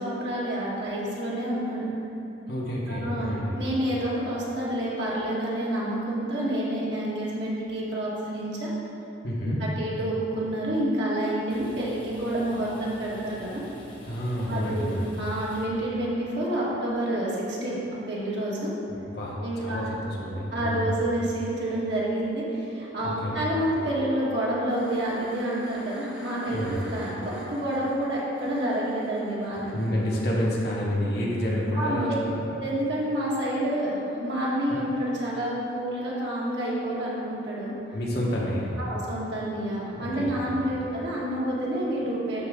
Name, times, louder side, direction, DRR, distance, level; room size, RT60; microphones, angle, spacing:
voice 1, 0.0-1.9 2.9-8.7 9.6-13.6 14.5-18.7 19.4-19.8 20.5-26.6 26.8-29.7 31.7-32.1 32.5-37.7 38.8-42.5, right 1 dB, 70° right, -6 dB, 1.7 m, -28 dB
voice 2, 2.5-3.5 9.2-9.6 14.1-15.1 19.1-20.8 23.0-23.3 26.5-26.8 29.7-32.3 37.9-38.7 39.9-40.6, equal, 60° left, -4 dB, 1.3 m, -29 dB
sound 1, 11.2-16.4, left 1 dB, 30° left, 1.1 m, -48 dB
sound 2, 24.7-30.2 32.9-33.0, equal, 10° right, 1.6 m, -47 dB
11.5 x 4.0 x 3.7 m, 2.9 s
head